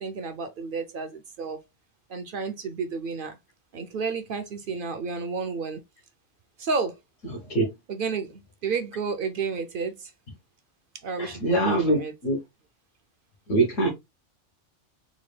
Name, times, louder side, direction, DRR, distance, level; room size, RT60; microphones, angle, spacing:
voice 1, 0.0-1.6 2.1-3.4 3.7-5.8 6.6-7.0 7.9-10.1 11.0-12.1, right 5 dB, 60° right, 0.6 m, -31 dB
voice 2, 11.2-12.4 13.5-13.9, right 2 dB, 80° left, 1.4 m, -23 dB
3.9 x 2.2 x 3.2 m
omnidirectional pair, 1.3 m